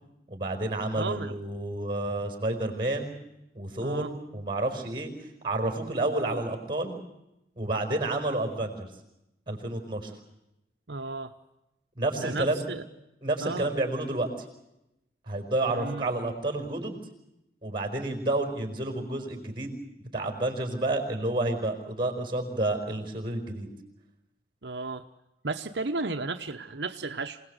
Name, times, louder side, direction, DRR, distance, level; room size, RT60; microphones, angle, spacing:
voice 1, 0.3-3.1 3.5-5.1 5.4-7.0 7.6-8.9 9.5-10.1 11.9-12.6 13.2-14.3 15.3-17.0 17.6-19.8 20.1-23.7, right 2 dB, 30° right, 6 dB, 4.9 m, -30 dB
voice 2, 0.9-1.4 3.8-4.1 10.9-11.3 12.2-12.8 13.4-13.7 15.7-16.1 24.6-25.1 25.4-27.4, right 3 dB, 80° right, 5 dB, 1.0 m, -33 dB
27.5 x 18.5 x 8.1 m, 0.90 s
head